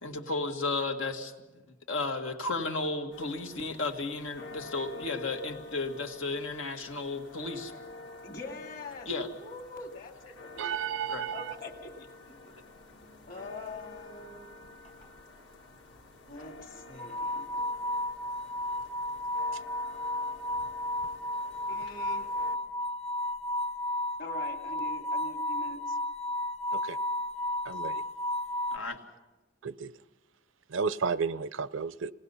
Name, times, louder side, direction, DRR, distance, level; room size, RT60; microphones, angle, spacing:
voice 1, 0.0-1.3 1.9-7.7 9.1-9.3 11.1-11.2 28.7-29.0, left 3 dB, 90° left, 2.0 m, -33 dB
sound 1, 3.1-22.6, left 2 dB, 65° left, 1.7 m, -49 dB
voice 2, 8.2-9.1 9.4-10.8 11.3-12.5 13.3-14.6 16.3-17.6 21.7-22.3 24.2-26.0, left 2 dB, 45° left, 2.2 m, -44 dB
voice 3, 10.6-11.4 26.7-27.0 27.7-28.0 29.6-29.9 30.7-32.1, right 6 dB, 85° right, 0.6 m, -32 dB
sound 2, 14.9-15.0 17.0-28.8, left 1 dB, 30° left, 1.1 m, -33 dB
27.0 x 18.5 x 5.6 m
head